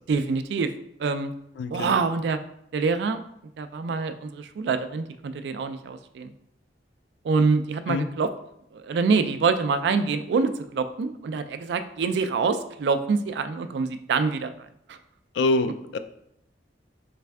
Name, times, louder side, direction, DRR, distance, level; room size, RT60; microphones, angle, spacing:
voice 1, 0.1-0.7 1.0-1.3 1.7-2.4 2.7-3.2 3.6-6.3 7.2-8.3 8.7-14.5 14.9-15.0, right 4 dB, 70° right, 10 dB, 0.3 m, -25 dB
voice 2, 1.6-1.9 7.9-8.1 15.4-16.0, left 2 dB, 80° left, 10 dB, 0.3 m, -25 dB
3.4 x 3.2 x 3.3 m, 0.74 s
head